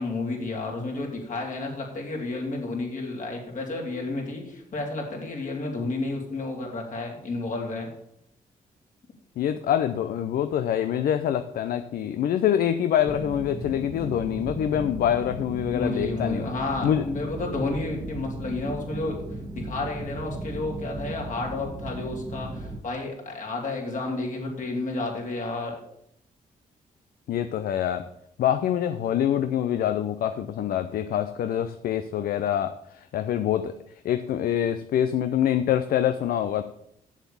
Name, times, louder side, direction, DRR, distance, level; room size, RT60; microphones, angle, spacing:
voice 1, 0.0-7.9 15.7-19.2 19.5-25.7, left 2 dB, 55° left, 0 dB, 3.4 m, -31 dB
voice 2, 9.4-16.5 16.8-17.1 27.3-28.1 28.4-33.7 34.0-36.6, left 10 dB, 75° left, 10 dB, 0.6 m, -25 dB
sound 1, 13.1-22.8, right 2 dB, 25° right, 1.3 m, -36 dB
7.4 x 7.3 x 7.1 m, 0.74 s
cardioid pair, 70°, 15 cm